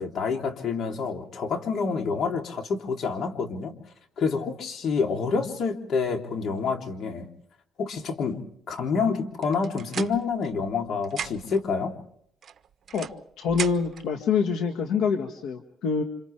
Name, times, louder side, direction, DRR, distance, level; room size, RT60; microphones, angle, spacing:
voice 1, 0.0-3.7 4.2-7.3 7.8-8.4 8.7-11.9, left 5 dB, 65° left, 3 dB, 3.4 m, -28 dB
sound 1, 9.4-10.8 11.0-11.6 12.4-14.1, right 8 dB, 55° right, 1.0 m, -37 dB
voice 2, 13.4-16.0, left 6 dB, 85° left, 5 dB, 1.8 m, -25 dB
30.0 x 27.0 x 3.5 m, 0.70 s
cardioid pair, 90°, 0 cm